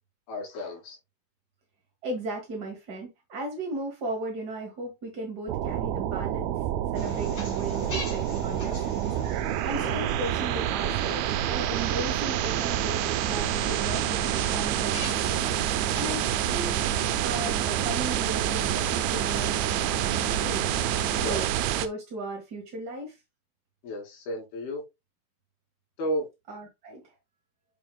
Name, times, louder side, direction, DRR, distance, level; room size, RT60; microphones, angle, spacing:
voice 1, 0.3-1.0 21.1-21.5 23.8-24.8 26.0-26.3, equal, 85° left, 4.6 m, -32 dB
voice 2, 2.0-6.5 6.9-15.4 15.9-16.7 17.2-20.6 21.1-21.4 21.7-23.2 26.5-27.1, right 2 dB, 45° right, 1.3 m, -36 dB
sound 1, 5.5-21.9, right 12 dB, 90° right, 2.6 m, -28 dB
sound 2, 6.9-21.5, left 4 dB, 35° left, 2.2 m, -40 dB
7.4 x 6.9 x 2.3 m
omnidirectional pair, 4.3 m